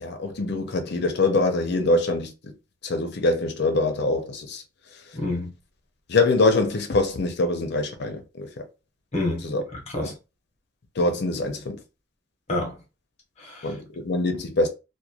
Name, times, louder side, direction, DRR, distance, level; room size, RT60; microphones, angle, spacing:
voice 1, 0.0-2.5 2.8-4.6 6.1-8.7 9.4-9.6 10.0-10.1 11.0-11.8 13.6-14.7, left 2 dB, 60° left, 0.6 m, -24 dB
voice 2, 5.1-5.5 9.1-10.1 12.5-12.8 13.4-13.8, left 2 dB, 35° left, 1.0 m, -29 dB
3.0 x 2.2 x 2.4 m
head